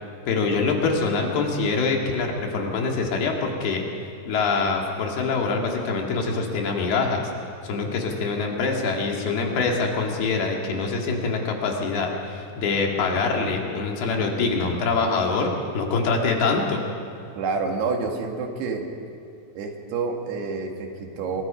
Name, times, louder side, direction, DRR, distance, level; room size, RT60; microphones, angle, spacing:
voice 1, 0.3-3.8 4.3-7.3 7.6-16.9, left 4 dB, 70° left, 1 dB, 4.1 m, -24 dB
voice 2, 17.4-18.9 19.6-21.4, right 4 dB, 75° right, 2 dB, 3.9 m, -28 dB
27.0 x 22.0 x 5.2 m, 2.5 s
omnidirectional pair, 4.7 m